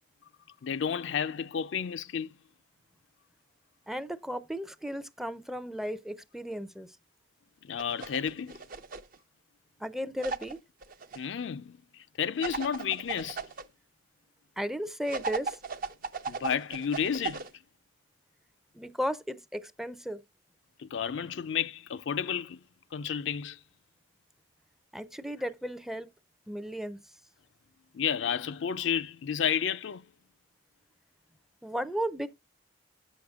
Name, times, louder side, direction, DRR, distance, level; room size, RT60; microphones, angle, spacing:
voice 1, 0.6-2.3 7.6-8.6 11.2-11.8 12.2-13.4 16.3-17.4 20.8-22.6 22.9-23.6 27.9-30.0, left 8 dB, 70° left, 0.4 m, -31 dB
voice 2, 3.9-6.9 9.8-10.6 14.6-15.6 18.7-20.2 24.9-26.1 26.5-27.0 31.6-32.4, equal, ahead, 0.5 m, -35 dB
sound 1, 7.8-9.2 10.2-11.2 12.4-13.6 15.1-17.5, right 5 dB, 50° right, 0.6 m, -37 dB
9.1 x 6.5 x 3.5 m
head